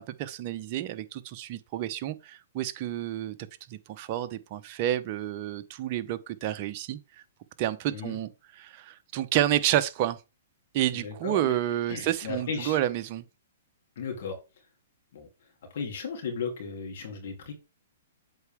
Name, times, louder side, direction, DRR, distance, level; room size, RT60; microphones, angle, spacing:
voice 1, 0.0-3.4 3.7-7.0 7.6-8.3 8.6-10.2 10.7-13.2, right 12 dB, 40° right, 0.8 m, -29 dB
voice 2, 7.9-8.2 10.9-11.6 11.9-12.8 14.0-14.4 15.1-15.3 15.7-17.5, left 5 dB, 60° left, 2.9 m, -35 dB
8.0 x 4.6 x 3.5 m
hypercardioid pair, 135°, 0 cm